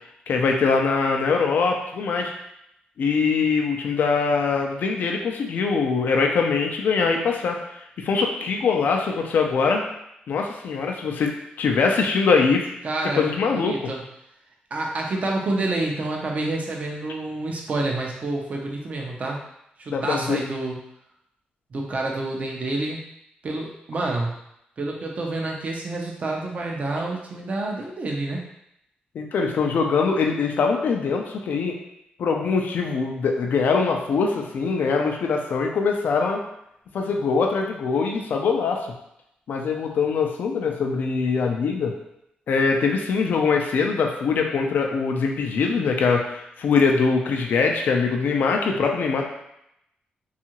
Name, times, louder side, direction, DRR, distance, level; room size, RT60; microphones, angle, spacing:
voice 1, 0.3-2.3 3.0-9.8 10.3-11.3 11.6-12.7 13.2-13.7 19.9-20.4 29.1-31.8 32.2-36.4 36.9-38.9 39.5-42.0 42.5-49.2, left 5 dB, 65° left, 2 dB, 0.4 m, -22 dB
voice 2, 12.8-13.3 13.5-14.0 14.7-19.4 19.8-20.8 21.7-23.0 23.4-24.4 24.8-28.4, right 2 dB, 45° right, -1 dB, 0.5 m, -28 dB
2.7 x 2.4 x 2.9 m, 0.80 s
cardioid pair, 100°, 3 cm